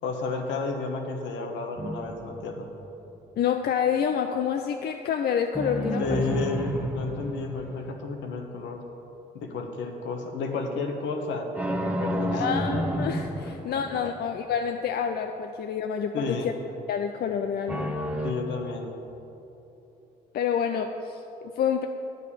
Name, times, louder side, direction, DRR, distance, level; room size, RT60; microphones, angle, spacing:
voice 1, 0.0-2.7 6.0-8.8 9.3-11.5 12.0-12.4 14.0-14.1 16.1-16.5 18.2-18.9, left 4 dB, 75° left, 3 dB, 1.2 m, -32 dB
sound 1, 1.8-2.9 5.5-8.2 11.5-14.3 17.7-18.3, equal, 5° right, 1.0 m, -31 dB
voice 2, 3.4-6.3 12.3-16.4 16.9-17.9 20.3-21.9, left 7 dB, 55° left, 6 dB, 0.5 m, -28 dB
9.4 x 5.3 x 6.9 m, 3.0 s
supercardioid pair, 65°, 19 cm